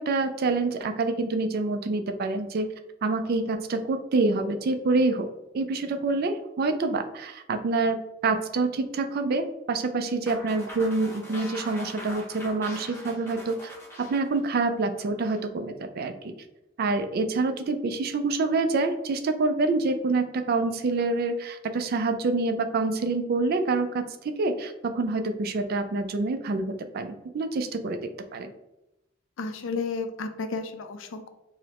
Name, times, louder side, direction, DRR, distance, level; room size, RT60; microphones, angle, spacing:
voice 1, 0.0-2.7 3.0-5.3 5.5-16.1 16.8-28.0 28.3-28.5, right 3 dB, 55° right, 8 dB, 0.3 m, -27 dB
sound 1, 10.3-15.4, left 1 dB, 15° left, 0.7 m, -42 dB
voice 2, 29.4-31.3, left 4 dB, 85° left, 7 dB, 0.4 m, -32 dB
4.8 x 2.0 x 2.9 m, 0.93 s
head